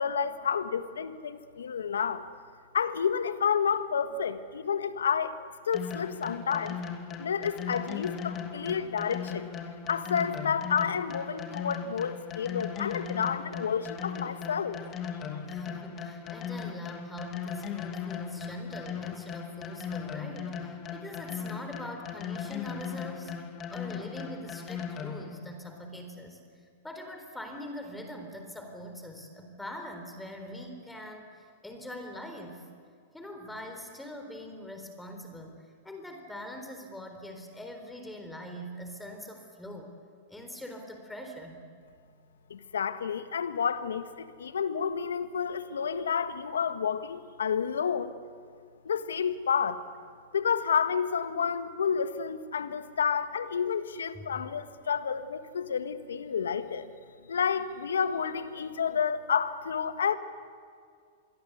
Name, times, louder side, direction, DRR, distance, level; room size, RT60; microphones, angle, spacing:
voice 1, 0.0-2.2 2.7-5.3 5.7-6.8 7.2-9.5 9.9-14.8 42.5-48.1 48.8-49.8 50.3-56.9 57.3-60.2, left 7 dB, 80° left, 11 dB, 1.5 m, -30 dB
sound 1, 5.7-25.4, left 7 dB, 30° left, 2.8 m, -38 dB
voice 2, 15.4-23.3 23.7-26.4 26.8-32.7 33.1-39.9 40.3-41.7 54.1-54.4, equal, 5° left, 4 dB, 4.0 m, -43 dB
27.0 x 22.0 x 8.1 m, 2.2 s
hypercardioid pair, 105°, 0 cm